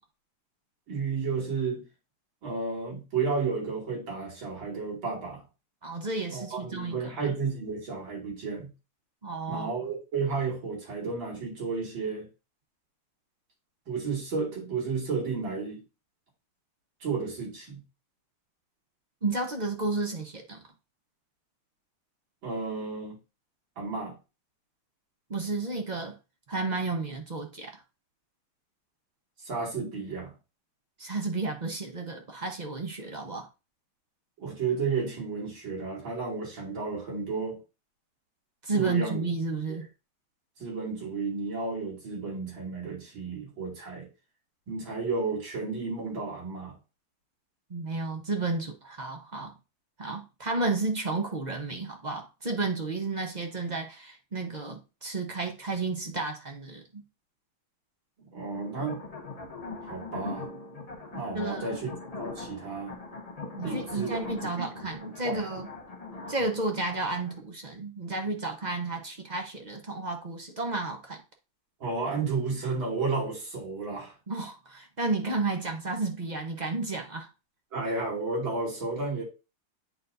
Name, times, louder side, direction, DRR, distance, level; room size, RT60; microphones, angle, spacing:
voice 1, 0.9-1.8 2.4-5.4 6.3-8.7 9.5-12.3 13.9-15.8 17.0-17.8 22.4-23.2 23.8-24.2 29.4-30.3 34.4-37.6 38.7-39.2 40.6-44.1 44.7-46.7 58.3-59.0 59.8-60.5 61.1-61.9 62.2-63.0 63.6-65.4 71.8-74.1 77.7-79.2, right 4 dB, 65° right, 3.3 m, -32 dB
voice 2, 5.8-7.1 9.2-9.7 19.2-20.6 25.3-26.1 26.5-27.8 31.0-33.5 38.6-39.9 47.7-49.5 50.0-57.0 61.3-61.8 63.5-65.7 66.3-71.2 74.3-77.3, right 3 dB, 45° right, 0.5 m, -32 dB
sound 1, 58.5-67.4, left 3 dB, 30° left, 0.6 m, -41 dB
9.1 x 4.3 x 2.6 m
omnidirectional pair, 2.3 m